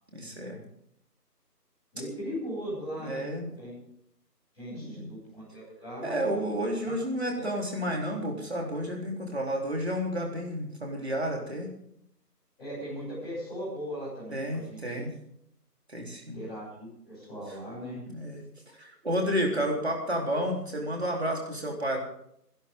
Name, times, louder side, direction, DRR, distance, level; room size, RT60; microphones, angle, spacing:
voice 1, 0.1-0.6 3.0-3.5 4.7-5.1 6.0-11.7 14.3-15.1 15.9-16.4 18.1-18.5 18.8-22.0, equal, 40° right, 0 dB, 3.9 m, -31 dB
voice 2, 1.9-3.8 4.5-6.3 6.8-6.9 7.4-7.5 12.6-15.0 16.3-18.0, equal, ahead, -19 dB, 7.1 m, -38 dB
27.0 x 12.0 x 3.8 m, 0.73 s
figure-of-eight pair, 175°, 49 cm